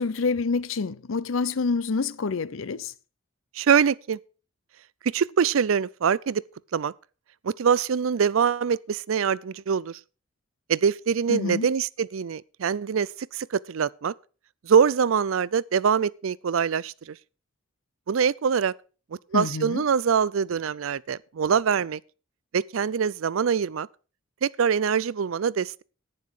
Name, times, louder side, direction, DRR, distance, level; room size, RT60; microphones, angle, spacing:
voice 1, 0.0-2.9 11.3-11.7 19.3-19.8, left 4 dB, 70° left, 0.6 m, -27 dB
voice 2, 3.5-4.2 5.1-6.4 6.7-6.9 7.4-10.0 10.7-14.1 14.6-17.1 18.1-18.7 19.3-22.0 22.5-23.9 24.4-25.8, right 7 dB, 75° right, 0.4 m, -24 dB
11.0 x 9.5 x 4.9 m
head